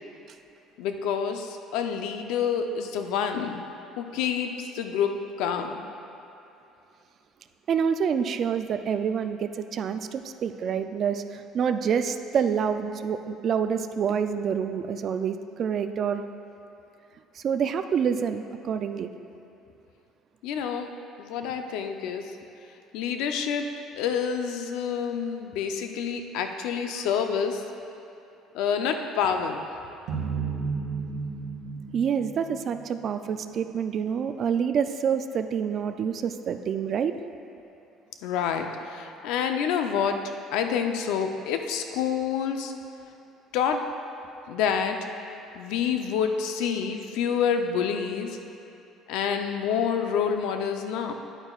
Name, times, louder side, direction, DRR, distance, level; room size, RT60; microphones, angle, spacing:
voice 1, 0.8-3.6 4.0-5.8 20.4-20.9 21.2-22.3 22.9-23.7 23.9-27.6 28.5-29.7 38.2-40.2 40.5-42.7 43.5-43.8 44.5-45.0 45.5-48.4 49.1-51.1, left 7 dB, 80° left, 5 dB, 0.6 m, -28 dB
voice 2, 7.7-16.2 17.4-19.1 31.9-37.1 46.6-46.7, right 7 dB, 40° right, 9 dB, 0.3 m, -27 dB
sound 1, 30.1-33.3, right 5 dB, 75° right, 1.3 m, -33 dB
11.0 x 8.8 x 2.4 m, 2.7 s
cardioid pair, 155°, 0 cm